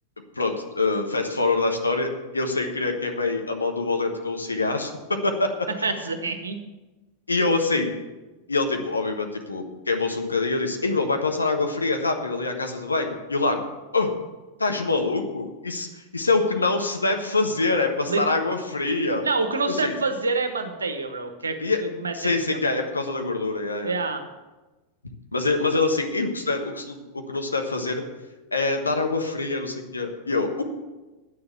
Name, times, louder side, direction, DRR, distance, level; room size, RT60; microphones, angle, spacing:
voice 1, 0.3-5.9 7.3-7.9 8.5-13.6 13.9-14.1 14.6-19.2 19.7-20.0 21.6-21.8 22.1-23.9 25.3-28.0 28.5-30.6, left 3 dB, 80° left, 4 dB, 1.3 m, -25 dB
voice 2, 5.8-6.6 18.0-18.2 19.2-22.6 23.8-24.2, right 3 dB, 75° right, 7 dB, 1.1 m, -27 dB
9.3 x 6.9 x 7.9 m, 1.1 s
figure-of-eight pair, 90°, 0 cm